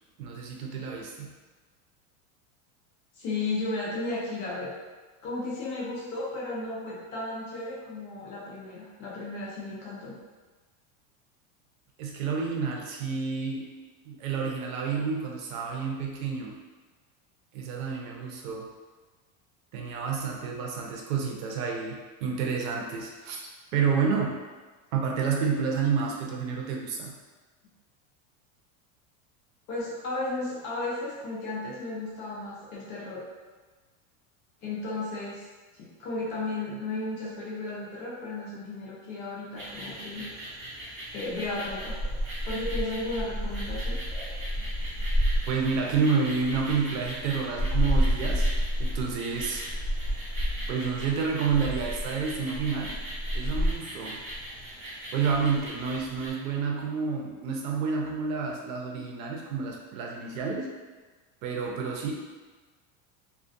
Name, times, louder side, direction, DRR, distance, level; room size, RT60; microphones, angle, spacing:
voice 1, 0.2-1.3 12.0-13.8 14.1-16.6 17.5-18.7 19.7-23.4 23.7-24.3 24.9-27.1 45.5-48.5 48.8-49.7 50.7-53.0 53.3-54.2 55.1-60.7 61.4-62.1, right 5 dB, 90° right, -1 dB, 0.7 m, -29 dB
voice 2, 3.1-4.7 5.2-10.2 29.7-33.2 34.6-35.5 35.7-40.3 41.1-42.0 42.4-44.0, left 2 dB, 30° left, -6 dB, 0.4 m, -34 dB
sound 1, 39.6-56.3, equal, 30° right, 0.7 m, -31 dB
2.3 x 2.1 x 2.5 m, 1.3 s
supercardioid pair, 165°, 40 cm